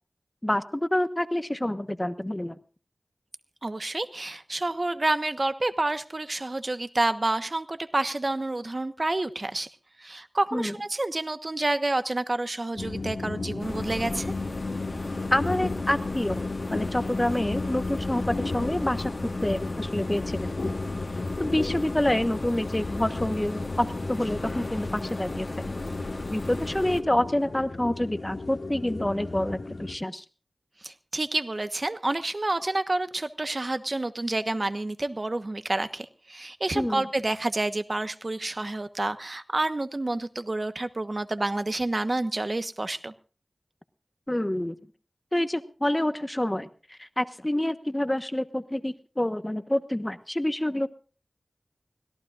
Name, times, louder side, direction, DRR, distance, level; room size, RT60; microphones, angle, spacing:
voice 1, 0.4-2.6 10.5-10.7 15.3-20.8 21.4-25.7 26.3-30.2 36.7-37.1 44.3-44.8 45.3-50.9, left 1 dB, 20° left, 10 dB, 1.2 m, -28 dB
voice 2, 3.6-9.7 10.0-14.3 30.8-43.1, right 2 dB, 45° right, 10 dB, 1.2 m, -29 dB
sound 1, 12.8-29.9, left 3 dB, 85° left, 2.1 m, -34 dB
sound 2, 13.6-27.0, left 2 dB, 55° left, 2.1 m, -37 dB
24.5 x 17.5 x 2.5 m, 0.39 s
wide cardioid pair, 55°, 0 cm